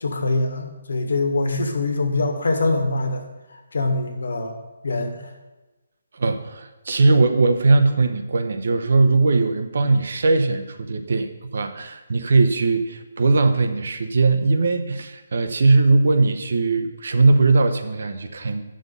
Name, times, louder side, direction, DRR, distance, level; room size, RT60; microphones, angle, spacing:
voice 1, 0.0-3.2 3.7-4.6 4.8-5.3, left 2 dB, 75° left, 5 dB, 1.5 m, -23 dB
voice 2, 6.1-18.6, right 3 dB, 55° right, 8 dB, 0.8 m, -19 dB
8.5 x 6.4 x 5.3 m, 1.1 s
hypercardioid pair, 175°, 0 cm